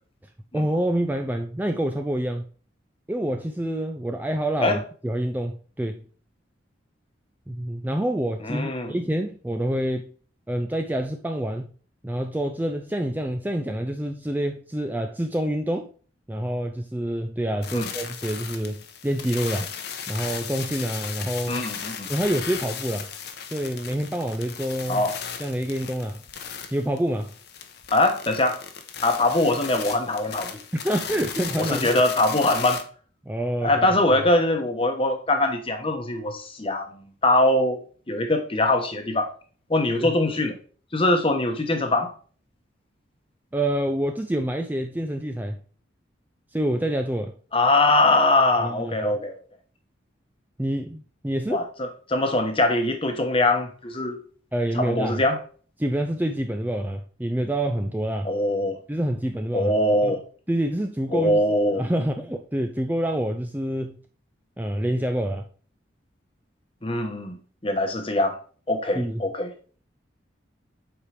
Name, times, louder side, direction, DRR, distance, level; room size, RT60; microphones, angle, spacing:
voice 1, 0.5-2.4 3.1-6.0 7.5-10.1 10.5-11.7 12.0-15.9 16.3-19.7 20.1-21.7 22.1-23.1 23.5-25.1 25.4-26.2 26.7-27.3 30.7-32.0 33.3-33.9 40.0-40.1 43.5-45.6 46.5-47.3 48.6-49.2 50.6-51.6 54.5-55.2 55.8-58.3 58.9-59.7 60.0-60.2 60.5-64.0 64.6-65.4 68.9-69.2, right 1 dB, 10° right, 0.4 m, -27 dB
voice 2, 8.4-8.9 17.7-17.9 21.5-22.1 24.9-25.1 27.9-28.6 29.0-30.6 31.6-32.9 33.6-39.3 39.7-40.6 40.9-42.1 47.5-49.4 51.5-51.6 52.1-54.2 54.8-55.4 58.2-58.8 59.5-60.2 61.1-61.8 66.8-67.4 67.6-68.4 68.7-69.5, left 2 dB, 30° left, 1.0 m, -22 dB
sound 1, 17.6-32.8, left 7 dB, 55° left, 0.8 m, -36 dB
7.5 x 4.8 x 3.3 m
head